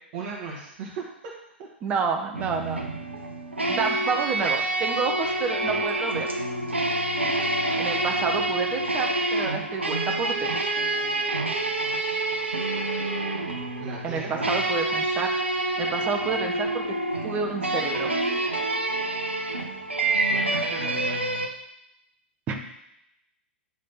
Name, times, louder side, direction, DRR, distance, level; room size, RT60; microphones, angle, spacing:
voice 1, 0.1-1.0 13.8-14.5 20.3-21.3, right 5 dB, 40° right, -3 dB, 1.3 m, -37 dB
voice 2, 1.8-2.8 3.7-6.3 7.8-10.6 14.0-17.0 17.2-18.1 22.5-22.6, right 5 dB, 25° right, 3 dB, 0.9 m, -29 dB
sound 1, 2.3-21.5, right 2 dB, 80° right, 0.9 m, -27 dB
9.4 x 3.3 x 4.2 m, 0.81 s
figure-of-eight pair, 105°, 6 cm